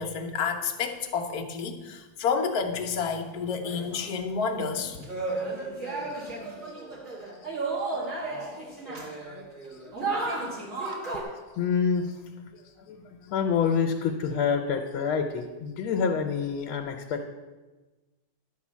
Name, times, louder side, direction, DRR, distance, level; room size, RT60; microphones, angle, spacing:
voice 1, 0.0-5.0, left 5 dB, 55° left, 5 dB, 1.2 m, -30 dB
sound 1, 3.3-4.1 4.7-11.2, right 3 dB, 40° right, 2.5 m, -33 dB
voice 2, 10.8-11.2 11.6-12.2 12.5-12.6 12.9-17.3, left 6 dB, 80° left, 4 dB, 1.6 m, -28 dB
11.5 x 4.6 x 7.3 m, 1.2 s
omnidirectional pair, 2.3 m